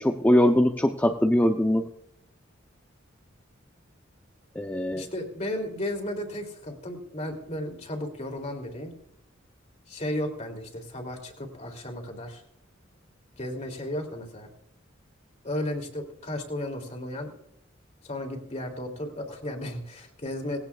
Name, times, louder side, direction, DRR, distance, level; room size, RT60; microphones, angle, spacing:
voice 1, 0.0-1.9 4.6-5.1, left 1 dB, 10° left, 2 dB, 0.6 m, -22 dB
voice 2, 4.9-8.9 9.9-12.4 13.4-14.5 15.4-17.3 18.0-20.6, left 1 dB, 35° left, 3 dB, 2.7 m, -34 dB
19.0 x 16.5 x 2.4 m, 0.75 s
head